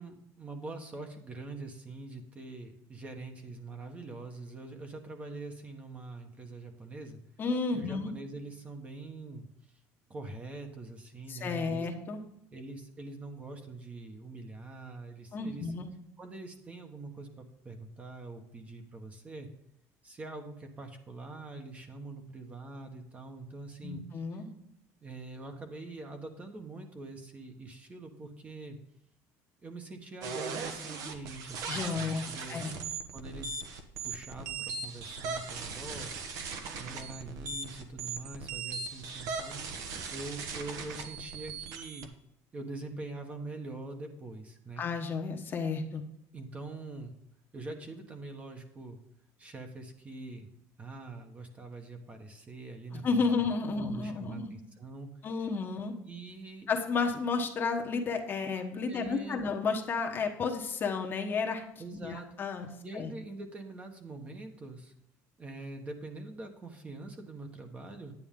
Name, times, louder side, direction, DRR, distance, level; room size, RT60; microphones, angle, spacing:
voice 1, 0.0-7.2 7.7-9.5 10.1-11.9 12.5-15.7 16.2-19.5 20.0-24.0 24.3-24.4 25.0-28.8 29.6-32.6 33.1-33.6 34.0-36.1 36.8-39.6 40.1-42.1 42.5-44.8 46.3-47.2 47.5-49.0 49.4-50.5 50.8-53.4 53.7-55.1 56.1-56.7 58.9-59.4 61.8-62.3 62.8-64.9 65.4-68.1, right 2 dB, 20° right, 5 dB, 1.3 m, -44 dB
voice 2, 7.4-8.1 11.3-12.2 15.3-15.9 23.8-24.5 31.7-32.2 32.5-32.7 44.8-46.0 52.9-54.5 55.2-55.9 56.7-61.6 62.0-62.7 62.9-63.1, left 4 dB, 30° left, 3 dB, 1.2 m, -32 dB
sound 1, 30.2-42.1, right 4 dB, 60° right, 1.3 m, -39 dB
9.7 x 9.6 x 3.7 m, 0.77 s
cardioid pair, 145°, 7 cm